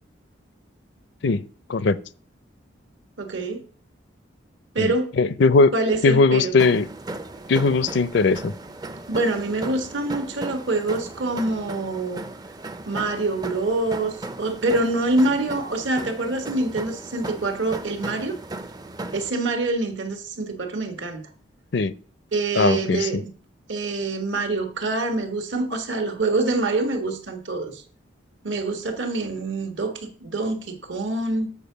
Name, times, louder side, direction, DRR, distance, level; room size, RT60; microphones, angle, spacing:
voice 1, 3.2-3.6 4.7-5.1 5.7-6.5 9.1-12.3 12.9-18.3 19.1-21.2 22.3-23.3 23.7-27.8 28.4-31.5, right 2 dB, 70° right, 1.4 m, -25 dB
voice 2, 4.8-5.7 6.0-6.9 7.5-8.5 21.7-21.9 22.6-23.2, left 3 dB, 60° left, 0.5 m, -19 dB
sound 1, 6.6-19.3, right 2 dB, 20° right, 0.4 m, -37 dB
7.2 x 4.5 x 6.7 m
head